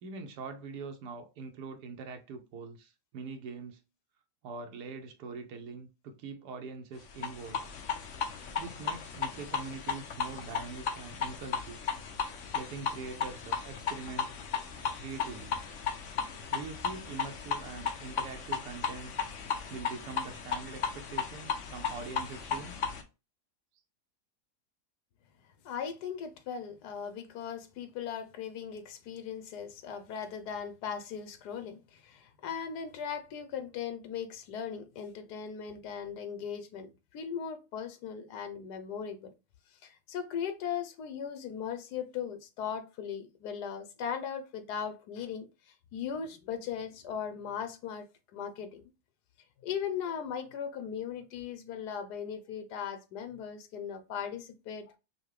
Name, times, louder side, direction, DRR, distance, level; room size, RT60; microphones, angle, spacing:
voice 1, 0.0-3.8 4.4-7.7 8.6-11.8 12.5-14.3 15.0-15.6 16.5-19.1 19.7-22.8, right 4 dB, 85° right, 1.2 m, -43 dB
sound 1, 7.1-23.0, left 6 dB, 60° left, 0.9 m, -35 dB
voice 2, 25.6-39.3 39.8-45.5 45.9-48.1 48.3-48.8 49.6-55.0, left 7 dB, 85° left, 1.3 m, -38 dB
5.6 x 2.1 x 3.2 m
omnidirectional pair, 1.7 m